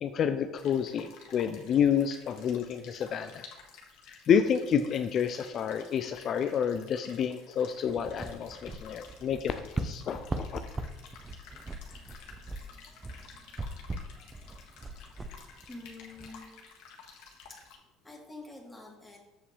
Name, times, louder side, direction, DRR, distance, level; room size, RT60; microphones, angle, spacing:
voice 1, 0.0-3.5 4.1-10.6, left 8 dB, 50° left, 9 dB, 0.4 m, -29 dB
sound 1, 0.5-17.8, left 5 dB, 70° left, 1.6 m, -53 dB
sound 2, 7.9-16.3, right 2 dB, 20° right, 0.7 m, -40 dB
voice 2, 15.7-16.5 17.5-17.7 18.0-19.2, left 2 dB, 10° left, -2 dB, 2.5 m, -47 dB
7.4 x 7.0 x 3.3 m, 1.1 s
hypercardioid pair, 70°, 0 cm